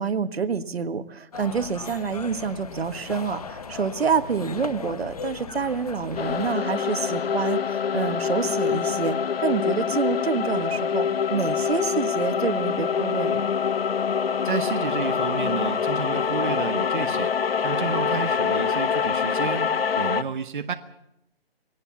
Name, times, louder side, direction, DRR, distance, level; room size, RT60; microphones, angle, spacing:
voice 1, 0.0-13.5, right 5 dB, 85° right, 12 dB, 1.8 m, -27 dB
sound 1, 1.3-6.5, left 5 dB, 40° left, 1.2 m, -38 dB
sound 2, 6.2-20.2, left 7 dB, 70° left, 1.0 m, -25 dB
voice 2, 14.4-20.7, right 6 dB, 55° right, 8 dB, 1.2 m, -31 dB
21.0 x 18.5 x 7.2 m, 0.83 s
hypercardioid pair, 180°, 30 cm